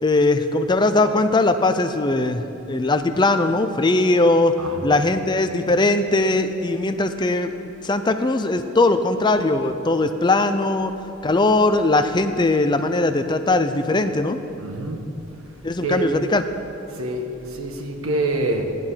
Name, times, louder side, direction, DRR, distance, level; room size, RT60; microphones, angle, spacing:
voice 1, 0.0-4.5 4.8-7.5 7.8-10.9 11.2-14.4 15.6-16.4, left 2 dB, 20° left, 9 dB, 0.5 m, -20 dB
voice 2, 4.6-4.9 14.6-15.1 15.8-16.2 16.9-18.8, right 2 dB, 70° right, 3 dB, 1.4 m, -26 dB
16.0 x 11.0 x 5.6 m, 2.9 s
head